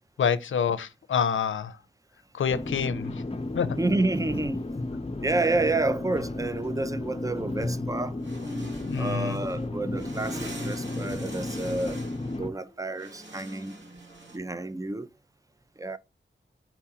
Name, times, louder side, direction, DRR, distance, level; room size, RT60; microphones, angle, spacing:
voice 1, 0.2-1.8 2.3-3.1 3.5-3.7 8.8-9.4, left 7 dB, 80° left, 0.5 m, -27 dB
sound 1, 2.5-12.5, left 2 dB, 30° left, 0.6 m, -33 dB
voice 2, 3.8-4.7 5.2-8.2 9.0-12.0 12.3-13.7 14.3-15.1 15.8-16.0, right 2 dB, 15° right, 0.4 m, -29 dB
sound 2, 7.9-14.4, right 1 dB, 70° right, 1.9 m, -43 dB
4.6 x 3.6 x 2.7 m
cardioid pair, 55°, 20 cm